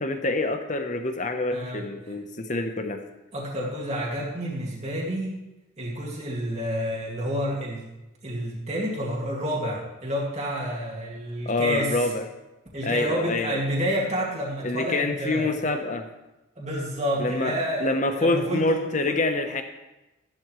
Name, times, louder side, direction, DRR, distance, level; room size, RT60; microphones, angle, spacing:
voice 1, 0.0-3.0 11.4-12.2 12.8-13.6 14.6-16.1 17.2-19.6, left 2 dB, 35° left, 6 dB, 1.0 m, -26 dB
voice 2, 1.5-1.8 3.3-5.3 5.8-7.9 8.2-12.0 12.7-15.5 16.6-19.2, equal, 35° right, -4 dB, 2.3 m, -29 dB
13.5 x 11.5 x 3.2 m, 0.99 s
head